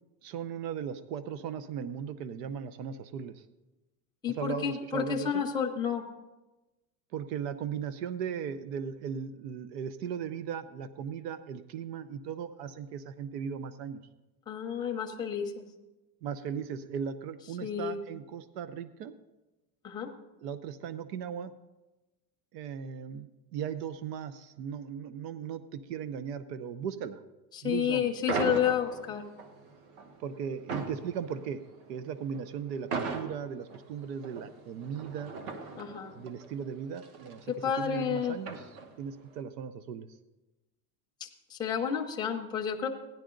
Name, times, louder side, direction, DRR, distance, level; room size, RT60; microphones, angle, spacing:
voice 1, 0.2-3.5 4.4-5.5 7.1-14.0 16.2-19.1 20.4-21.5 22.5-27.2 27.6-28.1 30.2-31.6 31.9-35.3 36.1-38.6 39.0-40.1, right 7 dB, 85° right, 14 dB, 0.8 m, -37 dB
voice 2, 4.2-6.0 14.5-15.5 17.6-18.0 19.8-20.1 27.5-29.2 35.8-36.1 37.5-38.4 41.2-42.9, left 8 dB, 10° left, 1 dB, 0.6 m, -30 dB
sound 1, 28.3-39.2, right 4 dB, 55° right, 1.4 m, -39 dB
15.5 x 10.5 x 3.8 m, 1.1 s
supercardioid pair, 170°, 47 cm